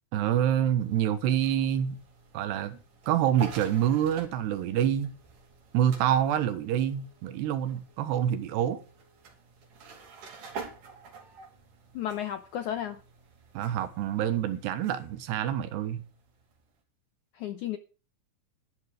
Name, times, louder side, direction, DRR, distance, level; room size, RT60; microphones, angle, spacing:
voice 1, 0.1-2.0 2.3-2.8 3.1-5.1 5.7-8.8 13.6-16.0, right 10 dB, 85° right, 3.4 m, -27 dB
sound 1, 0.8-16.8, right 5 dB, 55° right, 4.2 m, -48 dB
voice 2, 11.9-13.0 17.3-17.8, left 11 dB, 85° left, 1.7 m, -33 dB
12.5 x 11.0 x 4.9 m
omnidirectional pair, 4.7 m